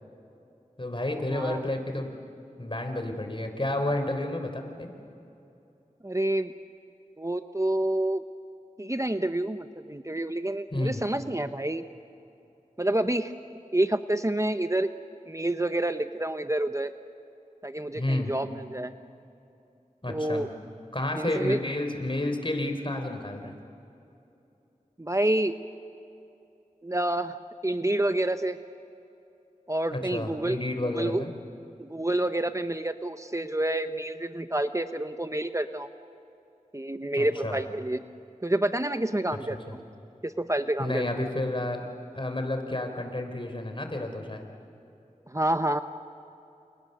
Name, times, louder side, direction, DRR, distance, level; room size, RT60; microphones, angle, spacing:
voice 1, 0.8-2.1 2.6-4.9 10.7-11.0 17.9-18.3 20.0-20.5 20.9-23.6 29.9-31.3 37.2-37.6 40.8-41.8 42.1-44.5, left 1 dB, 40° left, 5 dB, 3.8 m, -30 dB
voice 2, 6.0-6.5 7.2-8.2 8.8-11.8 12.8-13.3 13.7-14.9 15.3-16.9 17.6-18.9 20.1-20.5 21.2-21.6 25.0-25.5 26.8-27.4 27.6-28.6 29.7-30.6 30.8-31.2 31.8-35.9 36.7-38.0 38.4-39.8 40.2-41.0 45.3-45.8, right 1 dB, 20° right, 9 dB, 0.8 m, -28 dB
29.5 x 28.5 x 6.8 m, 2.8 s
wide cardioid pair, 40°, 14 cm